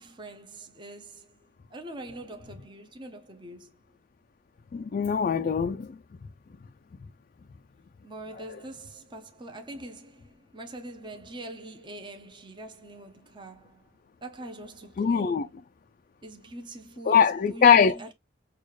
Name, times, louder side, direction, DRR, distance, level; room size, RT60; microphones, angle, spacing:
voice 1, 0.0-3.7 8.0-13.9 14.2-15.5 16.2-18.1, right 1 dB, 25° right, 0.8 m, -43 dB
voice 2, 4.7-5.9 15.0-15.5 17.1-18.1, left 7 dB, 45° left, 0.3 m, -21 dB
6.2 x 2.4 x 3.1 m
head